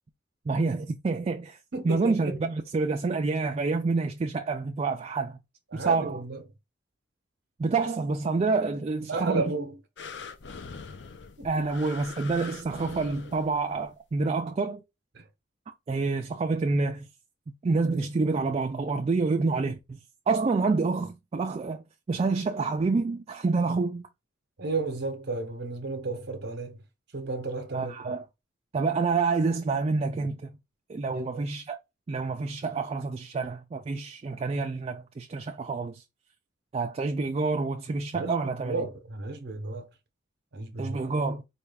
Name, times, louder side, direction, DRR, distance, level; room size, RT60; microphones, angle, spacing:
voice 1, 0.5-1.6 1.8-5.4 5.7-6.2 7.6-9.5 11.4-14.8 15.9-17.1 17.6-20.0 20.3-24.1 27.7-28.3 28.7-30.5 30.9-31.8 32.1-36.0 36.7-38.9 40.8-41.4, right 4 dB, 35° right, 0.3 m, -28 dB
voice 2, 1.7-2.4 5.7-6.4 9.1-9.8 11.4-11.5 15.1-15.2 24.6-26.8 27.1-28.2 31.1-31.4 38.1-39.9 40.5-41.0, right 3 dB, 60° right, 0.7 m, -33 dB
sound 1, 10.0-13.9 14.5-14.6, left 5 dB, 65° left, 0.5 m, -43 dB
4.3 x 2.3 x 3.3 m
head